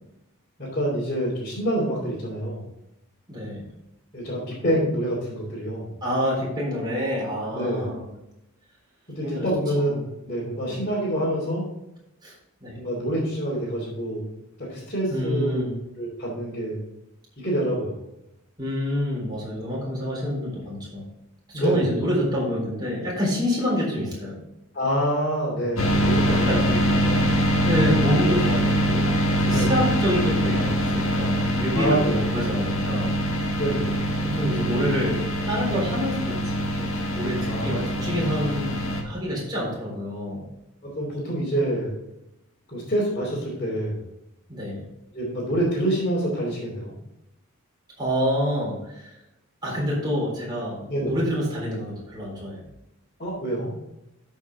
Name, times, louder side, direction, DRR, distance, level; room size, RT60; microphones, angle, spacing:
voice 1, 0.6-2.7 4.1-5.9 7.5-8.0 9.1-11.7 12.7-14.3 14.6-15.6 16.0-16.8 17.4-18.0 21.5-21.8 24.7-27.3 29.5-29.7 31.7-32.2 33.6-33.9 37.4-38.1 40.8-42.0 42.7-44.0 45.1-46.9 50.9-51.2 53.2-53.7, right 1 dB, 35° left, -8 dB, 3.0 m, -27 dB
voice 2, 3.3-3.7 4.6-4.8 6.0-8.1 9.2-9.5 9.8-9.9 10.7-10.8 12.2-12.3 12.6-12.8 15.1-15.8 18.6-21.0 21.5-24.4 26.3-26.7 27.7-33.2 34.3-35.2 35.5-36.9 37.1-40.5 44.5-44.8 48.0-49.1 49.6-52.7, equal, 20° right, -5 dB, 3.9 m, -27 dB
sound 1, 25.8-39.0, equal, 60° left, 1.6 m, -23 dB
13.0 x 5.6 x 3.7 m, 0.89 s
head